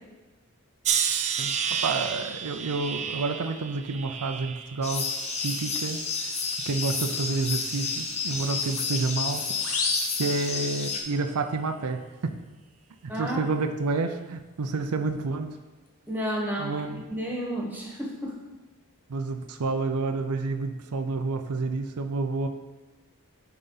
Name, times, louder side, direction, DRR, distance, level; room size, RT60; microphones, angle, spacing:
sound 1, 0.8-6.0 6.4-7.1 7.9-8.2, right 7 dB, 30° right, 0.4 m, -32 dB
voice 1, 1.4-5.1 5.4-6.4 6.7-9.5 10.2-12.4 13.0-15.6 16.6-17.0 19.1-22.5, right 3 dB, 85° right, 7 dB, 0.5 m, -29 dB
sound 2, 4.8-11.0, left 4 dB, 30° left, 0.8 m, -31 dB
sound 3, 9.6-11.1, left 3 dB, 75° left, 1.1 m, -32 dB
voice 2, 16.1-18.4, equal, 10° right, -2 dB, 1.3 m, -32 dB
10.5 x 4.0 x 4.0 m, 1.2 s
head